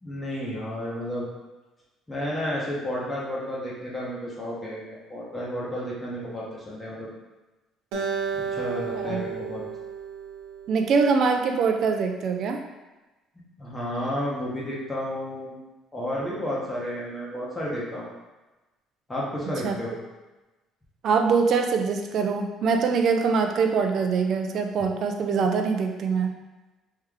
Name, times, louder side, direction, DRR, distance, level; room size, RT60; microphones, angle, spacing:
voice 1, 0.0-1.3 2.1-7.1 8.3-9.6 13.6-15.6 15.9-18.1 19.1-19.9, equal, 10° left, -6 dB, 1.0 m, -32 dB
Acoustic guitar, 7.9-11.3, right 6 dB, 90° right, 0.7 m, -33 dB
voice 2, 10.7-12.6 19.6-19.8 21.0-26.3, right 5 dB, 50° right, 4 dB, 0.4 m, -23 dB
3.3 x 3.2 x 3.6 m, 1.1 s
cardioid pair, 140°, 0 cm